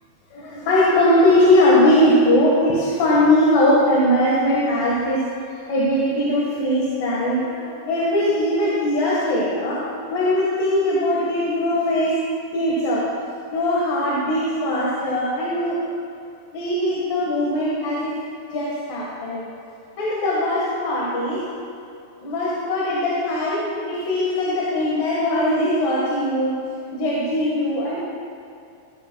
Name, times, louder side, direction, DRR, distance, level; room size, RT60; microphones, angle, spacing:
voice 1, 0.3-5.2 5.7-9.8 10.1-12.2 12.5-13.0 13.5-15.8 16.5-18.1 18.5-19.4 20.0-21.4 22.2-26.6 26.9-28.0, left 1 dB, 75° left, -6 dB, 3.3 m, -20 dB
15.5 x 12.0 x 2.3 m, 2.5 s
omnidirectional pair, 4.0 m